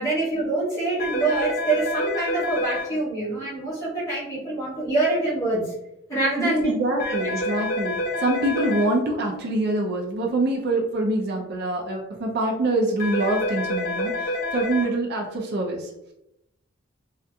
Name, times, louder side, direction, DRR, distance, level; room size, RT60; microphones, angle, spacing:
voice 1, 0.0-5.7 6.1-7.1, right 2 dB, 15° left, -9 dB, 1.1 m, -25 dB
sound 1, 1.0-2.8 7.0-8.8 13.0-14.8, left 1 dB, 45° left, 0.8 m, -27 dB
voice 2, 6.4-15.9, right 2 dB, 50° right, 0 dB, 0.4 m, -25 dB
2.7 x 2.4 x 2.2 m, 0.83 s
head